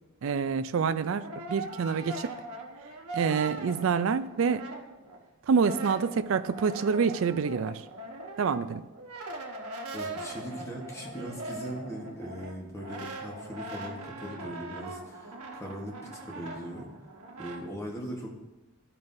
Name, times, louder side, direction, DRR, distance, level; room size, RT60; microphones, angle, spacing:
voice 1, 0.2-2.3 3.1-4.7 5.4-7.8 8.4-8.8, right 6 dB, 60° right, 13 dB, 0.3 m, -27 dB
Brass instrument, 0.8-5.2 5.5-17.6, right 2 dB, 85° right, 1.1 m, -41 dB
voice 2, 9.9-16.0 16.3-16.9 17.4-18.4, equal, 15° left, -1 dB, 1.2 m, -39 dB
12.5 x 5.5 x 2.6 m, 1.0 s
head